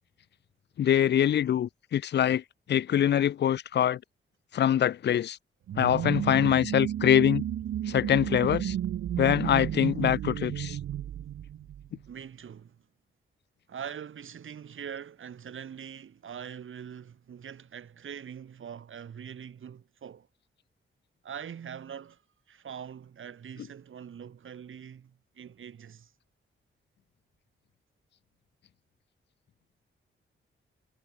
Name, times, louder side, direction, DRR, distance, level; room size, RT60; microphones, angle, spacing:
voice 1, 0.8-2.4 2.7-4.0 4.5-5.4 5.8-7.5 7.9-8.8 9.2-10.8, left 10 dB, 55° left, 0.4 m, -24 dB
sound 1, 5.7-12.1, right 11 dB, 90° right, 0.7 m, -32 dB
voice 2, 12.1-12.8 13.7-20.3 21.2-22.2 22.5-26.1, right 8 dB, 75° right, 4.3 m, -43 dB
wide cardioid pair, 120°, 21 cm